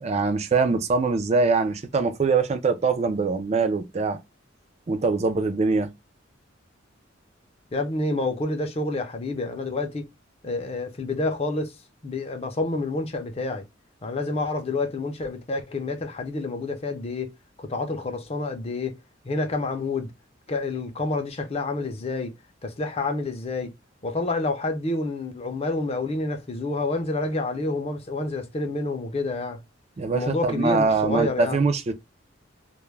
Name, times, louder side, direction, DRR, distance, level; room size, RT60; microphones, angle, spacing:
voice 1, 0.0-4.2 4.9-5.9 30.0-31.9, right 4 dB, 35° right, 0.4 m, -23 dB
voice 2, 7.7-10.1 10.4-11.7 12.0-13.6 14.0-17.3 17.6-19.0 19.2-20.1 20.5-22.3 22.6-23.7 24.0-29.6 30.1-31.6, left 2 dB, 30° left, 0.5 m, -28 dB
2.3 x 2.1 x 3.1 m
head